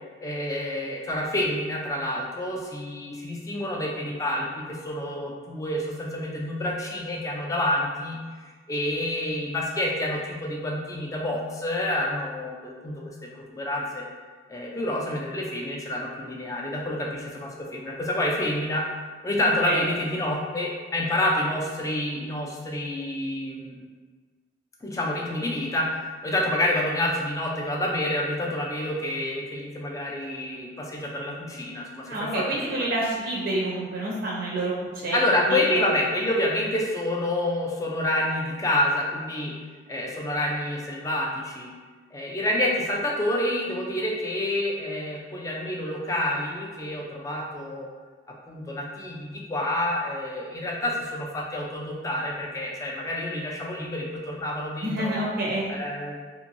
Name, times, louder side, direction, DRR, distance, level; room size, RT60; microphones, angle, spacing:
voice 1, 0.2-8.2 8.7-14.0 14.5-18.8 19.2-23.9 24.8-32.4 32.8-32.9 35.1-39.5 39.9-41.7 42.1-47.9 48.5-55.1 55.7-56.1, left 1 dB, 15° left, -2 dB, 0.3 m, -28 dB
voice 2, 32.1-35.2 35.5-35.8 54.8-55.7, right 1 dB, 50° right, -4 dB, 0.5 m, -28 dB
2.8 x 2.6 x 2.6 m, 1.5 s
head